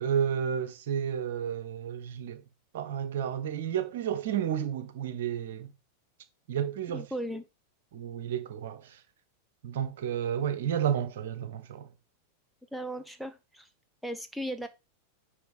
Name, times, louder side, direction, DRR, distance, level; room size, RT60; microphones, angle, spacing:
voice 1, 0.0-2.4 2.7-5.7 6.5-7.1 7.9-9.0 9.6-11.9, right 9 dB, 55° right, 1.3 m, -31 dB
voice 2, 6.9-7.4 12.7-13.7 14.0-14.7, equal, ahead, 0.8 m, -36 dB
10.0 x 3.7 x 5.3 m
figure-of-eight pair, 90°, 0 cm